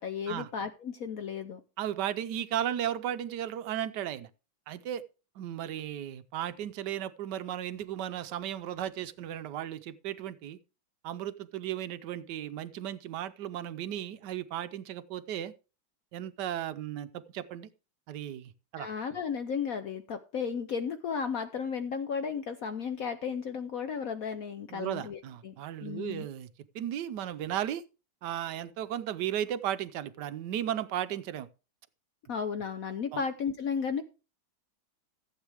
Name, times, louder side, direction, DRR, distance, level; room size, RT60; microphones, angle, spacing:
voice 1, 0.0-1.6 18.8-25.5 25.8-26.3 32.3-34.0, left 6 dB, 65° left, 0.9 m, -34 dB
voice 2, 1.8-4.3 4.7-5.0 5.4-10.6 11.0-15.5 16.1-17.7 18.1-18.9 24.7-26.5 26.7-27.8 28.2-31.5 33.1-33.2, right 11 dB, 70° right, 1.1 m, -35 dB
15.0 x 8.2 x 3.4 m
omnidirectional pair, 2.2 m